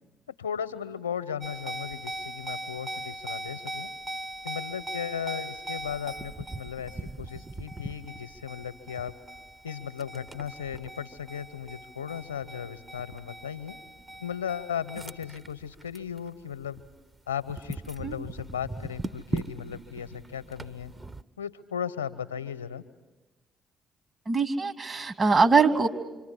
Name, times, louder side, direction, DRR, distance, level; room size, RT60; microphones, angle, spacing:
voice 1, 0.3-3.9 4.4-9.1 9.6-13.8 14.2-16.8 17.3-20.9 21.4-22.8, left 8 dB, 85° left, 13 dB, 0.8 m, -36 dB
sound 1, 1.4-16.2 16.5-16.9 17.4-21.2, right 2 dB, 25° right, 0.9 m, -39 dB
voice 2, 24.3-25.9, right 4 dB, 40° right, 5 dB, 2.4 m, -22 dB
26.0 x 25.5 x 8.4 m, 1.1 s
figure-of-eight pair, 40°, 0 cm